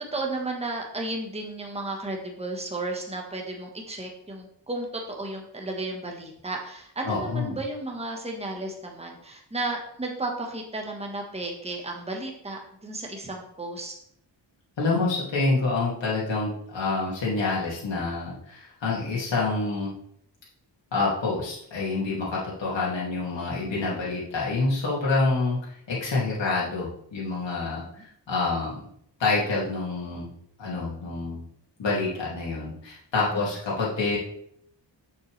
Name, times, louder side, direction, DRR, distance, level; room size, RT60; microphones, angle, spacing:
voice 1, 0.1-13.9 27.9-28.0 33.3-33.5, right 2 dB, 15° right, 1 dB, 1.2 m, -33 dB
voice 2, 7.1-7.6 14.8-19.9 20.9-25.6 25.9-27.8 28.3-28.8 29.2-30.3 30.6-31.4 31.8-34.2, left 3 dB, 80° left, -6 dB, 2.3 m, -27 dB
7.0 x 6.9 x 3.2 m, 0.69 s
wide cardioid pair, 115°, 43 cm